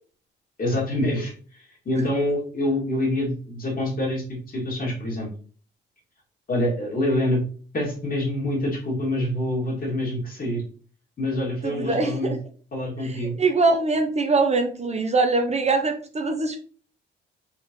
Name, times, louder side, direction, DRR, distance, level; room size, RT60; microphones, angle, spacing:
voice 1, 0.6-5.3 6.5-7.4 7.7-10.6 11.2-12.3 12.7-13.4, left 1 dB, 45° left, -2 dB, 2.4 m, -26 dB
voice 2, 11.6-12.4 13.0-16.6, right 3 dB, 35° right, 5 dB, 0.7 m, -23 dB
4.4 x 3.8 x 3.1 m, 0.42 s
cardioid pair, 90°, 20 cm